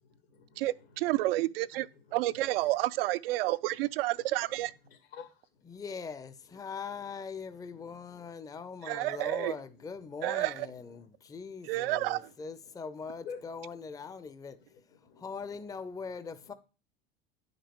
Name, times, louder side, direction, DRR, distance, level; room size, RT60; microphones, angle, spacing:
voice 1, 0.0-1.4 1.7-2.5 4.5-5.8 6.8-7.0 7.7-8.6 9.1-9.3 10.0-11.4 12.2-12.3 12.6-12.7 13.2-13.8 14.0-14.1 14.5-15.6 16.4-16.5, left 6 dB, 80° left, 2.0 m, -53 dB
voice 2, 0.6-1.9 2.1-4.7 8.9-9.5 10.2-10.7 11.7-12.2, right 17 dB, 70° right, 0.4 m, -30 dB
voice 3, 5.7-14.6 15.2-16.5, left 5 dB, 10° left, 0.5 m, -41 dB
9.8 x 5.2 x 3.0 m
hypercardioid pair, 90°, 30 cm